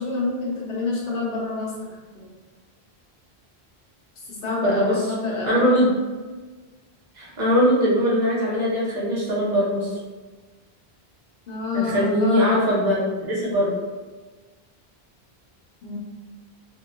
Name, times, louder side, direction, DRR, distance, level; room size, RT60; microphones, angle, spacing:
voice 1, 0.0-2.3 4.3-5.6 11.5-12.6 15.8-16.0, left 3 dB, 65° left, -3 dB, 0.9 m, -28 dB
voice 2, 4.6-5.0 5.4-5.9 7.2-9.9 11.7-13.7, equal, 45° right, -7 dB, 1.0 m, -21 dB
2.9 x 2.2 x 2.2 m, 1.3 s
omnidirectional pair, 1.1 m